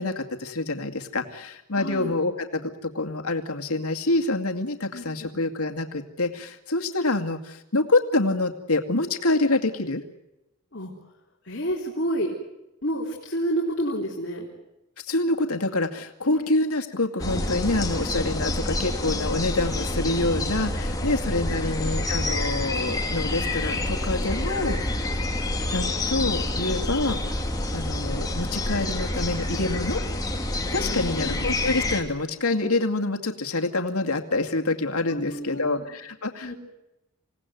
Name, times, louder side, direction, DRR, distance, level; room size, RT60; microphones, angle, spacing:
voice 1, 0.0-10.0 15.1-24.8 25.7-27.4 27.7-30.0 30.7-36.5, left 2 dB, 85° left, 5 dB, 2.3 m, -26 dB
voice 2, 1.8-2.1 4.9-5.3 10.7-10.9 11.4-12.3 12.8-14.5 16.3-16.5 30.8-31.6 35.1-35.8 36.4-36.5, equal, 50° left, -2 dB, 3.8 m, -30 dB
sound 1, 17.2-32.0, left 1 dB, 15° left, 2.6 m, -28 dB
27.5 x 17.5 x 9.4 m, 0.93 s
head